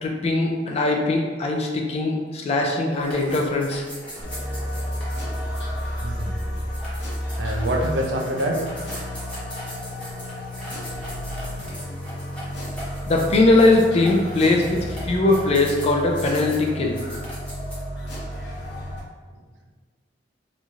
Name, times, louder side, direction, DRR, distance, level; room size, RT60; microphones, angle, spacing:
voice 1, 0.0-3.8 13.1-17.0, left 2 dB, 35° left, 1 dB, 0.3 m, -20 dB
sound 1, 2.9-17.7, equal, 5° left, 0.8 m, -40 dB
sound 2, 4.2-19.0, equal, 65° left, 0.8 m, -32 dB
voice 2, 6.0-6.6 7.4-8.6, right 1 dB, 70° right, 1 dB, 0.4 m, -26 dB
3.0 x 2.7 x 2.4 m, 1.4 s
head